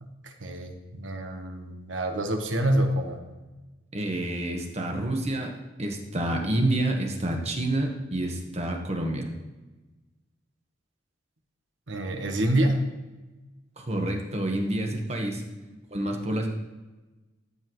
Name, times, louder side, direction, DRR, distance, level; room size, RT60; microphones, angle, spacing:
voice 1, 0.0-3.2 11.9-12.8, right 1 dB, 75° right, 4 dB, 1.3 m, -27 dB
voice 2, 3.9-5.5 5.8-9.3 13.8-15.4 15.9-16.5, right 1 dB, 35° right, 2 dB, 1.3 m, -28 dB
14.5 x 5.6 x 3.1 m, 1.2 s
head